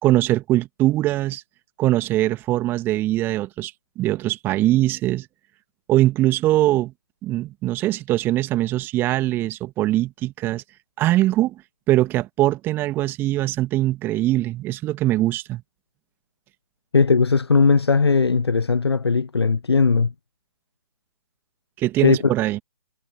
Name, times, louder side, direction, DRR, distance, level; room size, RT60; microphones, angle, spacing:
voice 1, 0.0-1.4 1.8-5.3 5.9-6.9 7.2-10.6 11.0-11.6 11.9-15.6 21.8-22.6, right 15 dB, 15° right, 1.9 m, -22 dB
voice 2, 16.9-20.1 22.0-22.3, left 4 dB, 70° left, 0.6 m, -18 dB
figure-of-eight pair, 135°, 14 cm